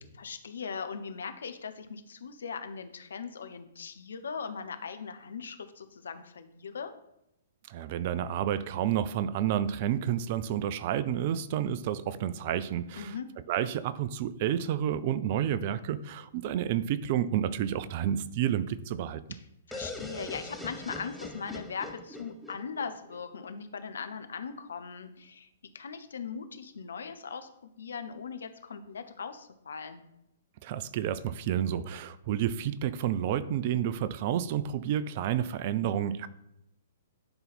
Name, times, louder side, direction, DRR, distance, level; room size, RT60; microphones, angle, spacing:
voice 1, 0.2-6.9 13.0-13.3 19.3-19.4 19.7-25.5 25.7-27.5 27.8-30.0, left 6 dB, 65° left, 9 dB, 0.8 m, -39 dB
voice 2, 7.7-13.1 13.5-19.2 30.6-36.3, right 10 dB, 40° right, 15 dB, 0.4 m, -30 dB
sound 1, 19.7-23.5, left 1 dB, ahead, 0.7 m, -42 dB
10.5 x 4.0 x 4.2 m, 0.83 s
figure-of-eight pair, 115°, 0 cm